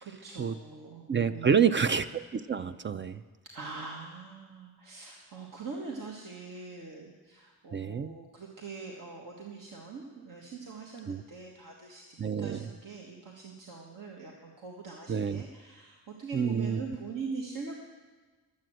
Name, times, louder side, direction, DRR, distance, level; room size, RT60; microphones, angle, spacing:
voice 1, 0.0-1.9 3.4-17.8, right 4 dB, 70° right, -1 dB, 1.6 m, -43 dB
voice 2, 1.1-3.2 7.7-8.1 11.1-11.2 12.2-12.6 15.1-15.4 16.3-16.8, right 7 dB, 35° right, 11 dB, 0.4 m, -28 dB
12.0 x 7.6 x 7.7 m, 1.3 s
cardioid pair, 100°, 34 cm